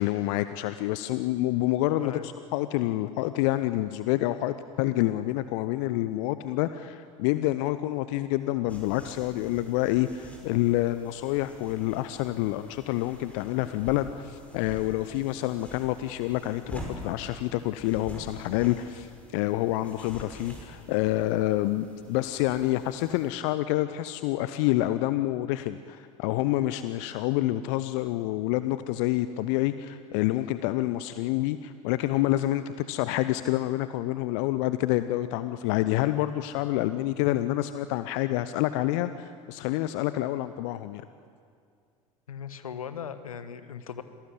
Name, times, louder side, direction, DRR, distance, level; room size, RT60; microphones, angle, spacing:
voice 1, 0.0-41.1, left 15 dB, 55° left, 12 dB, 0.8 m, -28 dB
voice 2, 2.0-2.3 42.3-44.0, left 8 dB, 75° left, 12 dB, 1.3 m, -38 dB
sound 1, 8.7-23.3, equal, 5° left, 5.7 m, -46 dB
26.5 x 18.0 x 8.4 m, 2.3 s
figure-of-eight pair, 70°, 18 cm